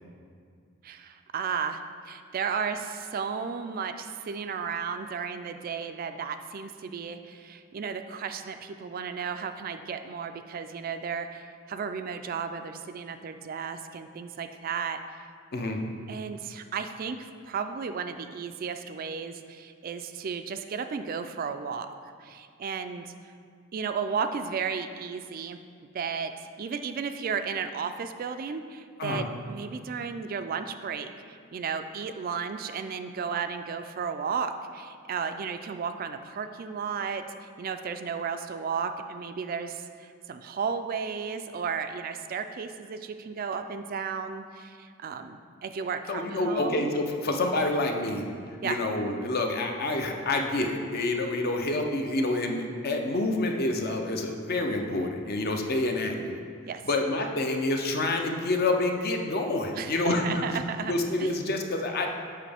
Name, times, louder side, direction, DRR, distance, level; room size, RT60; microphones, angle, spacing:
voice 1, 0.8-15.0 16.1-21.9 22.2-23.1 23.7-25.6 25.9-26.3 26.6-46.9 48.6-48.8 56.7-56.8 59.7-60.9 61.2-61.3, right 6 dB, 45° right, 8 dB, 0.3 m, -34 dB
voice 2, 46.1-48.2 48.6-56.4 56.9-60.6 60.8-62.1, left 2 dB, 50° left, 3 dB, 0.6 m, -28 dB
7.4 x 5.8 x 3.4 m, 2.2 s
head